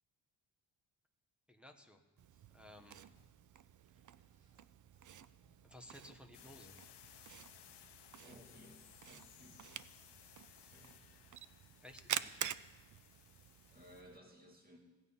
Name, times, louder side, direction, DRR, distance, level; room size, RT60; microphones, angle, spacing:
voice 1, 1.5-2.0 2.5-3.0 5.6-6.8 11.8-12.6, left 1 dB, ahead, 3 dB, 1.0 m, -57 dB
Camera, 2.2-14.2, right 10 dB, 45° right, 0.4 m, -48 dB
sound 1, 2.2-2.4 3.0-5.7 6.1-6.4 6.9-9.7 10.1-10.2, right 2 dB, 75° right, 3.8 m, -76 dB
voice 2, 2.8-3.2 8.2-9.8 10.6-11.0 13.7-14.8, left 1 dB, 20° right, 1 dB, 2.5 m, -60 dB
sound 2, 6.3-14.0, left 10 dB, 60° left, 0.8 m, -61 dB
16.0 x 8.3 x 5.6 m, 1.3 s
cardioid pair, 110°, 46 cm